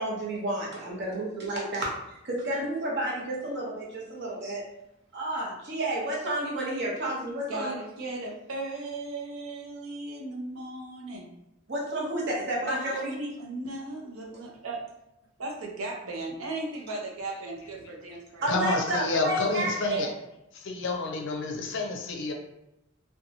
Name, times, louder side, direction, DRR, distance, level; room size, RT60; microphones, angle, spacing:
voice 1, 0.0-1.9 2.2-4.6 5.1-7.8 11.7-13.1 18.4-20.1, right 1 dB, 55° right, -4 dB, 0.8 m, -31 dB
voice 2, 7.5-11.4 12.7-14.8 15.4-18.5, right 2 dB, 90° right, 0 dB, 0.6 m, -36 dB
voice 3, 18.5-20.1 20.5-22.3, left 3 dB, 60° left, 3 dB, 0.5 m, -29 dB
2.8 x 2.2 x 2.6 m, 0.87 s
head